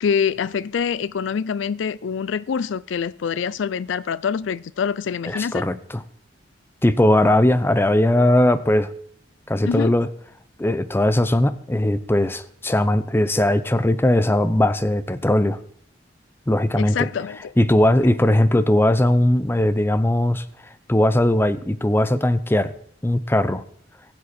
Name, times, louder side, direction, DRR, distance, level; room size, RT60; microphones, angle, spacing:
voice 1, 0.0-5.6 9.6-10.0 16.8-17.5, left 6 dB, 80° left, 0.4 m, -25 dB
voice 2, 5.2-6.0 6.8-8.9 9.5-10.1 10.6-15.6 16.5-17.1 17.6-20.4 20.9-22.7 23.0-23.6, left 1 dB, 10° left, 0.6 m, -19 dB
19.5 x 7.7 x 4.2 m
head